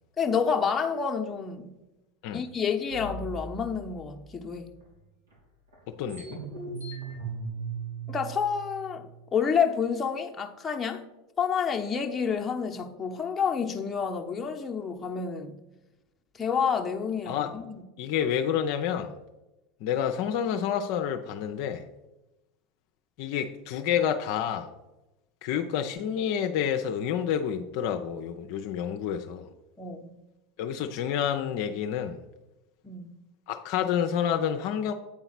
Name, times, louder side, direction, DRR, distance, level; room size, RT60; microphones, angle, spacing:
voice 1, 0.2-1.7 2.3-4.8 8.1-11.0 11.4-15.6 16.3-17.8 29.8-30.2 32.8-33.2, left 6 dB, 25° left, 0.9 m, -29 dB
sound 1, 2.9-4.8 5.3-5.4 5.7-9.2, right 4 dB, 90° right, 3.2 m, -39 dB
voice 2, 5.9-6.4 17.3-17.5 18.0-19.1 19.8-21.8 23.2-24.7 25.4-29.5 30.6-32.2 33.5-34.9, left 9 dB, 60° left, 0.6 m, -29 dB
8.7 x 3.9 x 5.9 m
hypercardioid pair, 85°, 0 cm